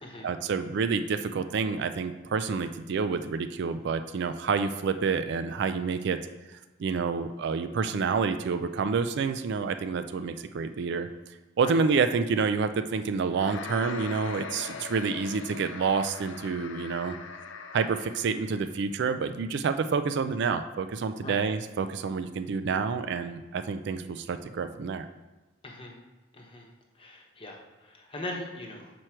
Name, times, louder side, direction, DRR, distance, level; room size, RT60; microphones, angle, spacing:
voice 1, 0.2-6.2 6.5-11.1 11.6-17.2 17.7-25.1, right 5 dB, 60° right, 10 dB, 0.4 m, -28 dB
sound 1, 13.3-18.7, left 5 dB, 75° left, 0.5 m, -41 dB
voice 2, 25.6-25.9 26.3-26.7 27.0-28.9, left 1 dB, 30° left, 0 dB, 1.0 m, -40 dB
6.2 x 4.5 x 4.4 m, 1.1 s
head